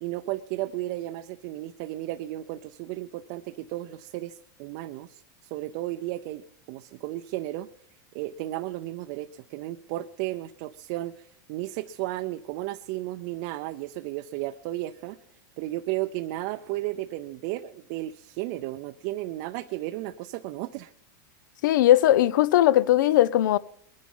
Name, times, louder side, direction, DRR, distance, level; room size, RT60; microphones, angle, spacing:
voice 1, 0.0-6.4 6.7-7.7 8.1-15.2 15.6-20.9, right 16 dB, 45° right, 0.5 m, -34 dB
voice 2, 21.6-23.6, left 13 dB, 75° left, 0.6 m, -19 dB
21.5 x 10.5 x 5.5 m
supercardioid pair, 155°, 10 cm